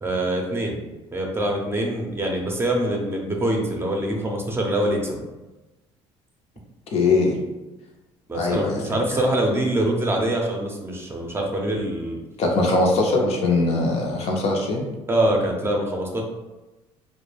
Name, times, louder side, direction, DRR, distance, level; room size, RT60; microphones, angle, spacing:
voice 1, 0.0-0.8 1.1-5.2 8.3-12.2 15.1-16.2, right 1 dB, 20° right, 0 dB, 0.6 m, -24 dB
voice 2, 6.9-7.4 8.3-9.2 12.4-14.9, left 3 dB, 55° left, 0 dB, 0.6 m, -21 dB
2.2 x 2.1 x 3.2 m, 1.1 s
supercardioid pair, 75°, 13 cm